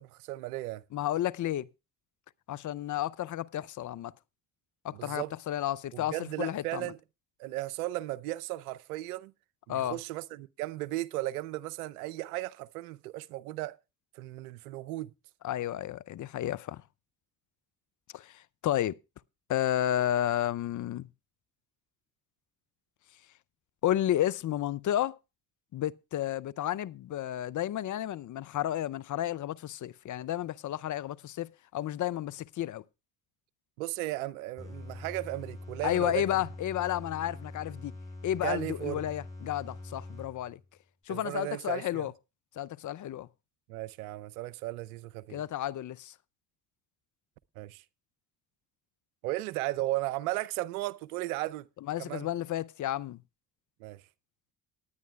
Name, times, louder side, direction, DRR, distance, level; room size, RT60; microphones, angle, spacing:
voice 1, 0.0-0.8 4.9-5.3 5.9-7.0 7.4-9.3 9.7-13.8 14.1-15.1 33.8-36.4 38.4-39.1 41.1-42.1 43.7-45.4 47.6-47.8 49.2-51.7 52.0-52.3 53.8-54.0, right 17 dB, 90° right, 0.6 m, -35 dB
voice 2, 0.9-1.7 2.5-4.1 4.8-6.9 9.7-10.0 15.4-16.8 18.1-19.0 19.5-21.1 23.8-25.2 25.7-32.8 35.8-37.9 38.2-40.6 41.1-42.1 42.6-43.3 45.3-46.1 51.9-53.2, left 12 dB, 45° left, 0.6 m, -32 dB
sound 1, 34.6-40.7, left 2 dB, 10° left, 7.3 m, -44 dB
19.5 x 9.5 x 2.3 m
hypercardioid pair, 55°, 42 cm